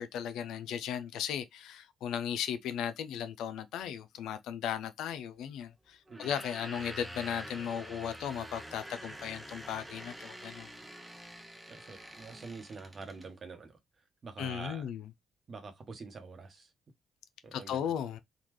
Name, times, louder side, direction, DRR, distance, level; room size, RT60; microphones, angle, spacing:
voice 1, 0.0-10.7 14.4-15.0 17.5-18.2, left 9 dB, 85° left, 0.4 m, -36 dB
sound 1, 6.1-13.3, right 1 dB, 10° right, 0.7 m, -47 dB
voice 2, 11.7-13.8 14.2-14.9 15.5-16.7 17.4-17.9, right 4 dB, 40° right, 1.0 m, -46 dB
3.7 x 2.3 x 3.0 m
cardioid pair, 90°, 0 cm